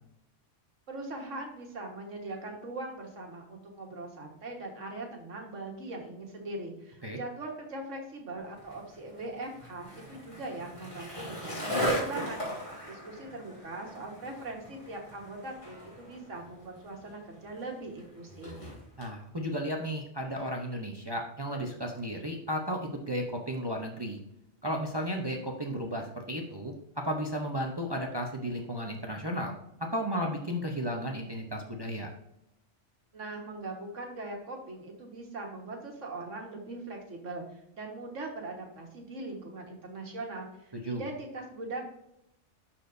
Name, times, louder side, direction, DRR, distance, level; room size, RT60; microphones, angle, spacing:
voice 1, 0.9-12.4 12.9-18.6 33.1-41.8, right 2 dB, 90° right, 1 dB, 1.8 m, -41 dB
Skateboard, 8.6-19.1, equal, 25° left, 2.8 m, -38 dB
voice 2, 19.0-24.2 24.6-29.5 29.8-32.1 40.7-41.0, equal, 25° right, 2 dB, 0.6 m, -34 dB
11.5 x 4.3 x 2.6 m, 0.82 s
omnidirectional pair, 1.2 m